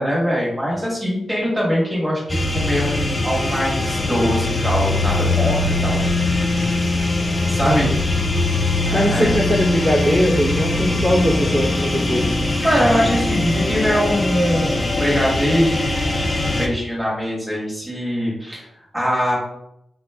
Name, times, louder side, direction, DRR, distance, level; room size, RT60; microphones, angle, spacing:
voice 1, 0.0-6.4 7.5-7.9 8.8-9.3 12.6-16.1 16.4-18.6 18.9-19.4, equal, 10° right, -5 dB, 1.1 m, -22 dB
sound 1, 2.3-16.7, left 2 dB, 25° left, 0.3 m, -21 dB
voice 2, 7.6-8.0 8.9-12.3, equal, 55° right, -6 dB, 0.7 m, -20 dB
3.7 x 2.3 x 2.2 m, 0.81 s
cardioid pair, 95°, 0 cm